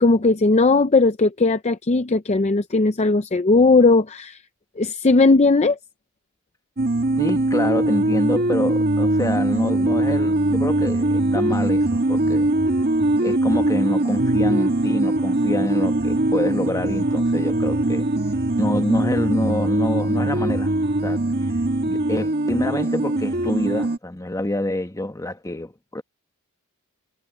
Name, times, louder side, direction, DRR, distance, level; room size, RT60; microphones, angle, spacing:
voice 1, 0.0-4.4 4.8-5.8, left 3 dB, 30° left, 0.5 m, -17 dB
sound 1, 6.8-24.0, right 1 dB, 45° right, 1.7 m, -21 dB
voice 2, 7.2-12.5 13.2-18.1 18.6-20.7 21.0-21.2 21.8-26.0, left 1 dB, 15° left, 1.3 m, -26 dB
head